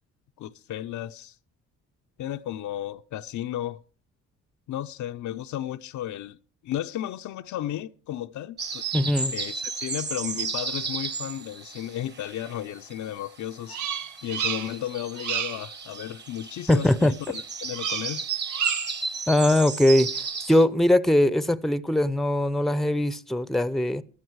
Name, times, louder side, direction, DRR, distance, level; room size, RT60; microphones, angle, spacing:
voice 1, 0.4-1.3 2.2-3.8 4.7-6.4 6.6-8.8 9.3-13.8 14.2-18.3, left 12 dB, 70° left, 0.7 m, -34 dB
sound 1, 8.6-12.9 13.2-20.6, right 5 dB, 35° right, 1.5 m, -34 dB
voice 2, 8.9-9.3 16.7-17.1 19.3-20.2 20.5-24.0, left 1 dB, ahead, 0.7 m, -21 dB
Bird vocalization bird call bird song, 13.7-14.9 15.2-15.7 17.7-18.2 18.5-19.0, right 8 dB, 75° right, 1.1 m, -30 dB
15.5 x 11.5 x 4.7 m
cardioid pair, 90°, 30 cm